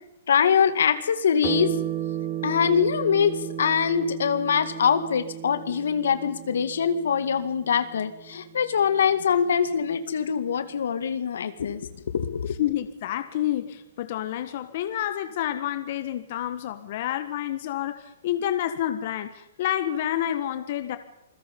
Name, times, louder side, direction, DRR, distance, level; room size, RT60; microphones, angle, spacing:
voice 1, 0.3-1.8 2.4-12.6, left 7 dB, 80° left, 10 dB, 2.1 m, -23 dB
sound 1, 1.4-10.3, right 11 dB, 30° right, 3.5 m, -35 dB
voice 2, 12.6-21.0, left 12 dB, 45° left, 9 dB, 1.6 m, -29 dB
27.0 x 21.5 x 5.5 m, 0.84 s
hypercardioid pair, 160°, 0 cm